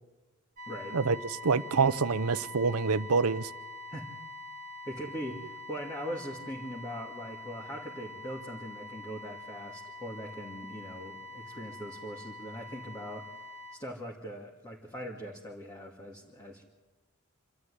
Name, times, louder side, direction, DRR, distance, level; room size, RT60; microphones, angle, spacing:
sound 1, 0.6-13.8, left 2 dB, 40° right, 1.9 m, -45 dB
voice 1, 0.7-1.0 3.9-4.1 4.8-13.3 13.7-16.6, equal, 20° left, 2.3 m, -41 dB
voice 2, 1.4-3.5, right 4 dB, 85° right, 0.7 m, -26 dB
27.5 x 13.0 x 9.9 m
head